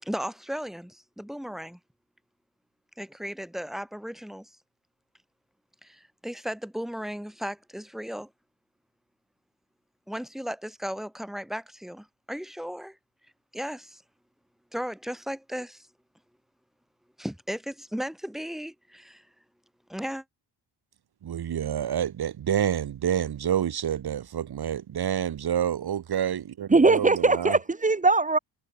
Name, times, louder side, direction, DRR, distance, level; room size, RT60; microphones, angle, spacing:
voice 1, 0.0-1.8 3.0-4.5 5.8-8.3 10.1-13.0 13.5-14.0 14.7-15.9 17.2-19.3 19.9-20.2, equal, ahead, 4.4 m, -35 dB
voice 2, 21.2-27.6, right 9 dB, 60° right, 2.4 m, -28 dB
voice 3, 26.7-28.4, right 3 dB, 15° right, 2.3 m, -20 dB
wide cardioid pair, 145°, 43 cm